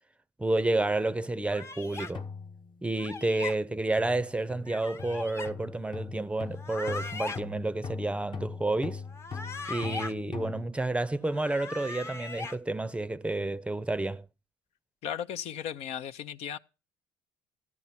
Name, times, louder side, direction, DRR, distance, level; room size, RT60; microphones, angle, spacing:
voice 1, 0.4-2.3 2.8-9.0 9.7-14.3, right 2 dB, 10° right, 0.6 m, -30 dB
sound 1, 1.2-1.5 2.1-3.1 4.0-10.7, left 5 dB, 45° left, 1.2 m, -41 dB
sound 2, 1.5-2.1 3.0-3.5 4.7-5.5 6.5-7.4 9.1-10.1 11.3-12.6, left 3 dB, 25° left, 0.8 m, -39 dB
voice 2, 15.0-16.6, left 9 dB, 70° left, 0.6 m, -36 dB
14.0 x 9.7 x 5.8 m
supercardioid pair, 80°, 11 cm